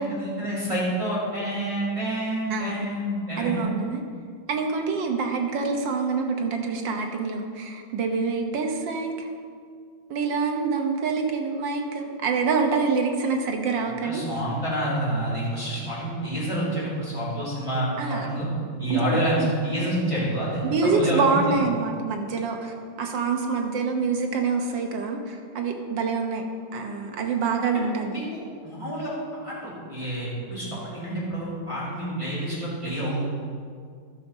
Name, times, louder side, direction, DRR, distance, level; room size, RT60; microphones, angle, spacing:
voice 1, 0.0-3.6 14.0-18.5 18.8-19.4 19.6-21.6 27.7-27.8 28.1-29.1 29.4-33.2, right 1 dB, 15° right, -9 dB, 3.1 m, -28 dB
voice 2, 2.5-2.9 3.4-4.0 4.5-9.3 10.1-14.2 18.0-18.3 18.9-19.5 20.7-26.4 26.7-28.3, right 4 dB, 80° right, 3 dB, 1.7 m, -26 dB
12.0 x 6.2 x 5.4 m, 2.1 s
omnidirectional pair, 2.0 m